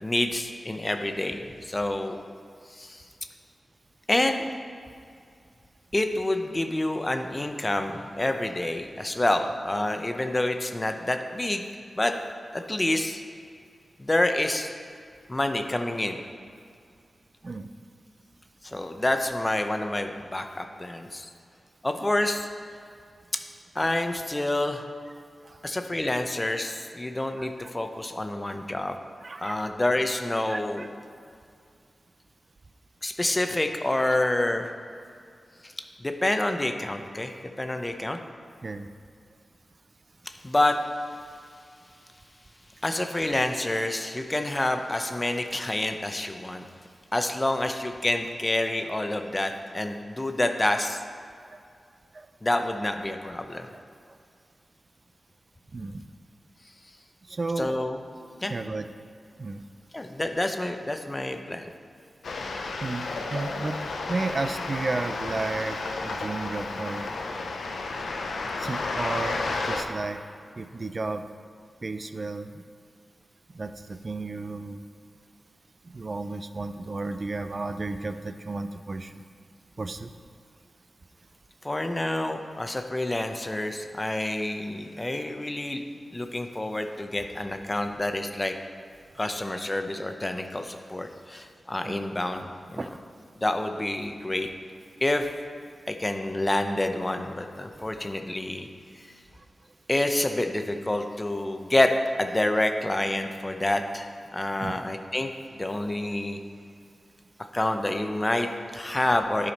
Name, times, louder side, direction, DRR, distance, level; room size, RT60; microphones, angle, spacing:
voice 1, 0.0-2.2 2.7-3.0 4.1-4.5 5.9-11.6 12.0-12.1 12.5-13.2 14.0-14.7 15.3-16.2 18.6-21.3 21.8-22.5 23.7-24.9 25.6-29.0 29.4-30.9 33.0-34.7 35.6-35.7 36.0-38.2 40.4-40.8 42.8-46.7 47.1-51.0 52.4-53.7 57.6-58.0 58.4-58.5 59.9-61.7 81.6-85.8 86.1-88.6 89.2-92.9 93.4-94.5 95.0-95.3 95.9-98.7 99.0-99.1 99.9-106.4 107.5-109.5, left 1 dB, 25° left, 6 dB, 0.7 m, -28 dB
voice 2, 27.4-27.7 29.2-29.6 30.5-30.9 38.6-38.9 52.1-52.3 55.7-56.0 57.3-57.7 58.4-58.9 59.4-59.6 62.8-63.8 64.1-65.8 66.0-67.0 68.6-70.2 70.6-71.3 71.8-72.6 73.5-74.8 75.9-79.2 79.8-80.1 91.8-92.0 92.8-92.9 104.6-104.8, right 3 dB, 50° right, 9 dB, 0.5 m, -33 dB
sound 1, 62.2-69.8, left 3 dB, 85° left, 0.6 m, -32 dB
11.0 x 4.9 x 4.2 m, 2.3 s
cardioid pair, 40°, 0 cm